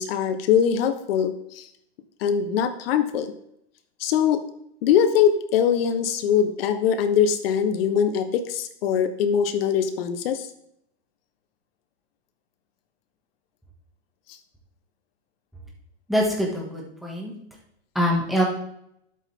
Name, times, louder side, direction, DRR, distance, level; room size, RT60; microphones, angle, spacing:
voice 1, 0.0-1.7 2.2-3.3 4.0-4.4 4.8-10.5, left 8 dB, 60° left, 9 dB, 1.4 m, -22 dB
voice 2, 16.1-17.3 17.9-18.4, equal, ahead, -3 dB, 2.4 m, -24 dB
11.5 x 8.3 x 3.9 m, 0.74 s
supercardioid pair, 145°, 33 cm